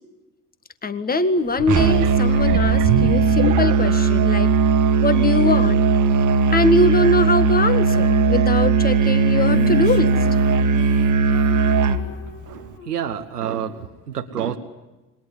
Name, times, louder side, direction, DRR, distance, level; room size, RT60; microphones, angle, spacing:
voice 1, 0.8-4.5 5.0-5.9 6.5-10.2, left 2 dB, 20° left, 11 dB, 1.8 m, -21 dB
sound 1, 1.5-4.1 4.8-4.9, right 9 dB, 65° right, 1.7 m, -27 dB
Musical instrument, 1.7-12.1, right 5 dB, 40° right, 1.9 m, -18 dB
Female singing, 9.5-13.0, left 7 dB, 65° left, 3.4 m, -35 dB
voice 2, 12.5-14.6, right 9 dB, 85° right, 5 dB, 1.3 m, -28 dB
27.5 x 22.5 x 9.6 m, 1.1 s
figure-of-eight pair, 60°, 46 cm